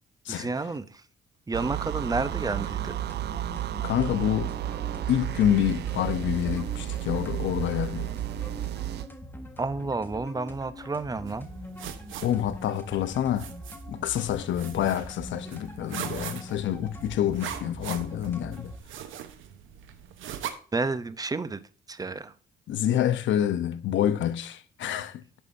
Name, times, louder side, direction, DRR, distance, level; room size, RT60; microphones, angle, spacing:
voice 1, 0.3-1.0 1.5-3.0 9.6-11.5 20.7-21.6 21.9-22.3, right 3 dB, 20° right, 0.6 m, -30 dB
sound 1, 1.5-9.1, right 14 dB, 55° right, 0.4 m, -32 dB
sound 2, 2.2-18.8, left 1 dB, 10° left, 1.3 m, -43 dB
voice 2, 3.8-4.5 5.1-8.1 12.2-13.5 13.9-18.7 22.7-25.2, left 10 dB, 70° left, 0.8 m, -27 dB
sound 3, 11.3-20.5, right 10 dB, 80° right, 0.9 m, -41 dB
11.0 x 5.6 x 2.6 m
cardioid pair, 90°, 20 cm